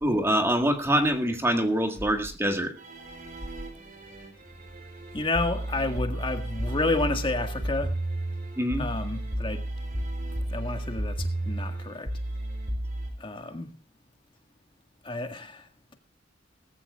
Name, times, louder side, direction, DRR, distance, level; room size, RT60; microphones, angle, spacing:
voice 1, 0.0-2.7 8.6-8.9, right 1 dB, 15° right, 1.7 m, -25 dB
sound 1, 2.8-13.1, right 1 dB, 45° right, 3.5 m, -33 dB
voice 2, 5.1-8.0 8.8-9.7 10.5-12.1 13.2-13.7 15.0-15.9, left 2 dB, 30° left, 1.7 m, -30 dB
19.0 x 15.0 x 2.4 m
head